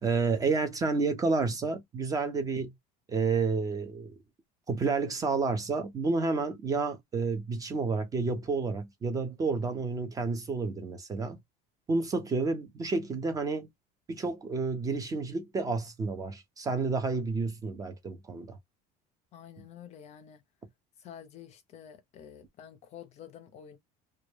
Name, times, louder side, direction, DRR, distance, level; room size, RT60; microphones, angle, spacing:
voice 1, 0.0-2.7 3.1-4.2 4.7-11.4 11.9-13.7 14.1-18.6, right 4 dB, 20° right, 0.4 m, -30 dB
voice 2, 19.3-20.4 21.0-23.8, left 9 dB, 35° left, 0.5 m, -49 dB
2.2 x 2.0 x 3.1 m
cardioid pair, 155°, 19 cm